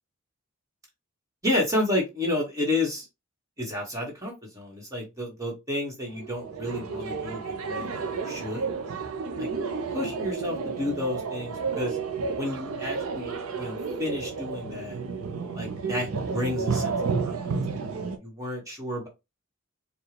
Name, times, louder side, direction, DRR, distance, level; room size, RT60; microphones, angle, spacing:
voice 1, 1.4-3.0 3.6-8.7 9.4-9.5 9.9-12.0 12.4-15.0 15.5-16.9 17.2-19.1, left 1 dB, 15° right, -1 dB, 1.5 m, -31 dB
sound 1, 6.1-18.2, right 5 dB, 85° right, 0.6 m, -31 dB
4.5 x 2.3 x 3.2 m, 0.23 s
head